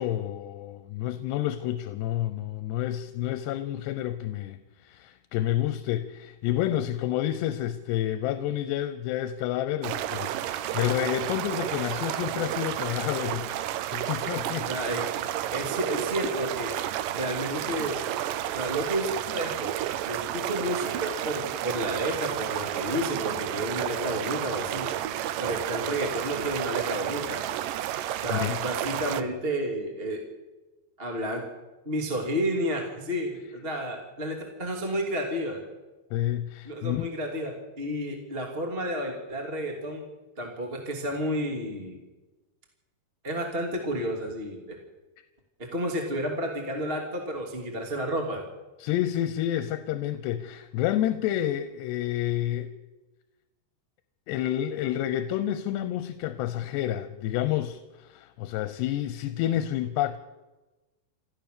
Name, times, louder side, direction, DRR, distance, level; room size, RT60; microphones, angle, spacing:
voice 1, 0.0-14.7 28.3-28.6 36.1-37.1 48.8-52.7 54.3-60.2, left 12 dB, 90° left, 11 dB, 3.0 m, -29 dB
sound 1, 9.8-29.2, right 12 dB, 80° right, 2.0 m, -31 dB
voice 2, 14.7-15.1 15.5-16.7 17.1-18.0 18.5-19.7 20.1-24.9 25.4-27.4 28.2-30.2 31.0-31.4 31.8-35.6 36.6-40.0 40.4-42.0 43.2-44.8 45.6-48.4, equal, 15° right, 2 dB, 2.1 m, -31 dB
28.0 x 14.0 x 6.8 m, 1.1 s
omnidirectional pair, 4.8 m